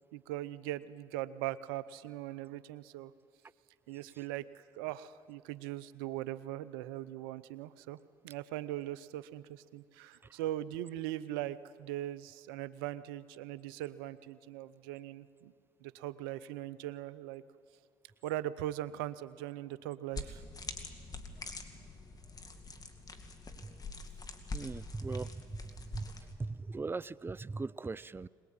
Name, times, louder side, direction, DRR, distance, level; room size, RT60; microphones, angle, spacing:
voice 1, 0.1-3.1 3.9-8.0 8.2-15.5 15.8-17.4 18.2-20.4, right 14 dB, 90° right, 0.6 m, -40 dB
sound 1, 20.1-26.3, left 3 dB, 35° left, 2.3 m, -45 dB
voice 2, 24.5-25.6 25.9-26.1 26.4-28.3, right 3 dB, 20° right, 0.5 m, -39 dB
22.0 x 20.5 x 8.9 m
hypercardioid pair, 65°, 11 cm